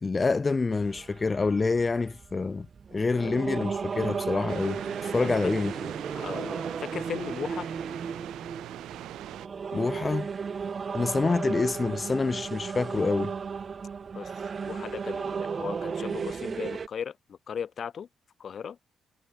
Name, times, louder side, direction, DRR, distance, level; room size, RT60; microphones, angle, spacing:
voice 1, 0.0-2.7 2.9-5.7 9.7-10.3 10.9-13.3, left 4 dB, 30° left, 0.7 m, -27 dB
sound 1, 0.7-16.9, right 5 dB, 40° right, 1.4 m, -35 dB
sound 2, 4.5-9.5, right 14 dB, 85° right, 3.1 m, -40 dB
voice 2, 6.1-7.7 14.2-14.3 14.6-18.1 18.4-18.8, left 7 dB, 50° left, 1.2 m, -37 dB
cardioid pair, 90°, 0 cm